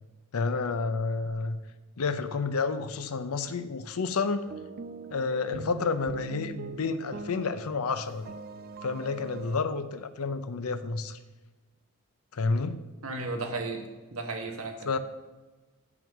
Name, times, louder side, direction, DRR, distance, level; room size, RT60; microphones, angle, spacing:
voice 1, 0.3-1.6 2.0-4.5 5.1-8.3 8.8-11.2 12.3-12.8 14.8-15.0, left 4 dB, 90° left, 11 dB, 0.7 m, -30 dB
sound 1, 4.5-7.8 8.1-9.6, right 4 dB, 45° right, 0.3 m, -42 dB
voice 2, 13.0-14.9, right 3 dB, 80° right, 3 dB, 1.4 m, -34 dB
7.1 x 6.1 x 6.1 m, 1.2 s
head